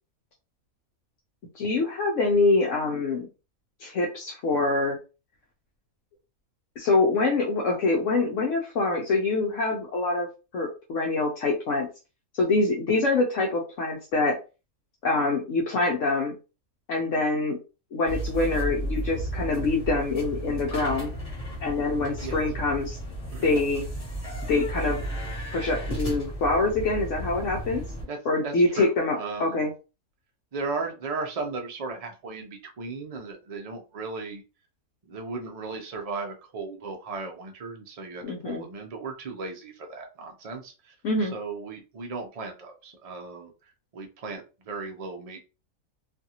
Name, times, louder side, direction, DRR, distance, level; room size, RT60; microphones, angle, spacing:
voice 1, 1.5-3.3 3.8-5.0 6.8-10.3 10.5-11.9 12.3-14.4 15.0-16.3 16.9-17.6 17.9-21.1 21.6-23.0 23.4-23.8 24.5-25.0 25.5-27.8 28.3-29.7 38.2-38.6 41.0-41.3, left 3 dB, 65° left, -1 dB, 0.9 m, -25 dB
sound 1, 18.1-28.0, right 1 dB, 25° left, 1.2 m, -34 dB
voice 2, 28.1-29.7 30.5-34.4 35.0-45.4, right 4 dB, 75° right, 3 dB, 0.3 m, -36 dB
2.6 x 2.5 x 2.8 m, 0.31 s
omnidirectional pair, 1.5 m